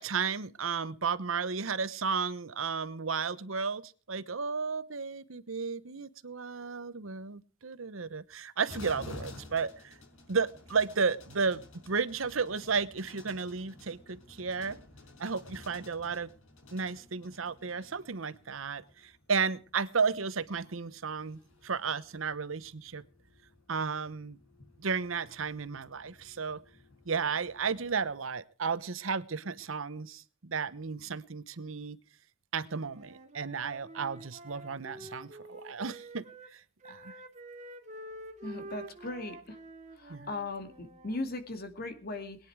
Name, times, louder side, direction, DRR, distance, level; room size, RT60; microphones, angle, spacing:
voice 1, 0.0-10.0 10.3-14.8 15.2-16.3 16.7-23.0 23.7-24.4 24.8-26.6 27.1-32.0 32.5-36.2 36.5-36.6 36.9-37.1 40.1-40.3, right 5 dB, 85° right, 16 dB, 1.0 m, -33 dB
sound 1, 8.7-28.2, left 2 dB, 75° left, 5.3 m, -53 dB
Wind instrument woodwind instrument, 32.8-36.5 36.8-41.2, right 1 dB, 35° right, 2.3 m, -48 dB
voice 2, 38.4-39.6 40.0-42.4, left 2 dB, 50° left, 7 dB, 2.2 m, -38 dB
21.5 x 9.9 x 4.7 m, 0.39 s
head